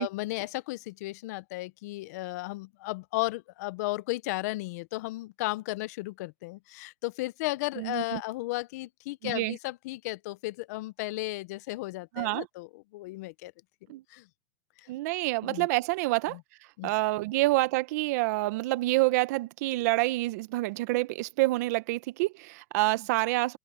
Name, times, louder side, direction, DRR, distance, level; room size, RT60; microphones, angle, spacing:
voice 1, 0.0-13.5 14.1-14.3 14.8-14.9 15.4-15.7 16.3-16.4 16.8-16.9, left 20 dB, 60° left, 0.7 m, -34 dB
voice 2, 7.8-8.2 9.2-9.6 12.2-12.5 13.9-14.0 14.9-16.4 16.8-23.6, right 21 dB, 55° right, 1.2 m, -27 dB
open air
supercardioid pair, 145°, 10 cm